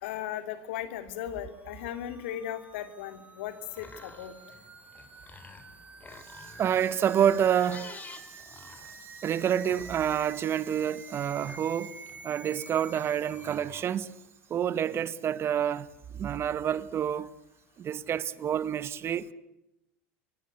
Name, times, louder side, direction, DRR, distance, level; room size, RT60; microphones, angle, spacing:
voice 1, 0.0-4.3, left 11 dB, 80° left, 3.1 m, -37 dB
sound 1, 1.3-13.6, right 4 dB, 20° right, 3.8 m, -49 dB
sound 2, 3.5-14.3, left 4 dB, 25° left, 4.8 m, -52 dB
voice 2, 6.6-8.1 8.5-8.6 9.2-12.0 12.2-14.1 14.5-15.9 16.1-17.3 17.8-19.3, right 9 dB, 40° right, 1.6 m, -28 dB
28.5 x 23.0 x 8.2 m
supercardioid pair, 95°, 6 cm